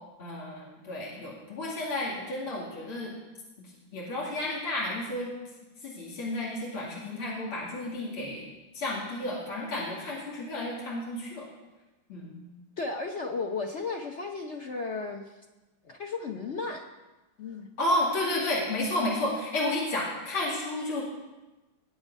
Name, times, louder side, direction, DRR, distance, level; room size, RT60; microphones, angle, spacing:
voice 1, 0.2-3.1 3.6-5.3 5.8-8.5 8.7-11.5 12.1-12.4 17.8-21.0, left 1 dB, 90° left, -4 dB, 3.4 m, -32 dB
voice 2, 12.8-15.4 15.8-16.8 17.4-17.7, left 4 dB, 60° left, 4 dB, 0.7 m, -34 dB
18.5 x 7.7 x 5.4 m, 1.1 s
omnidirectional pair, 2.3 m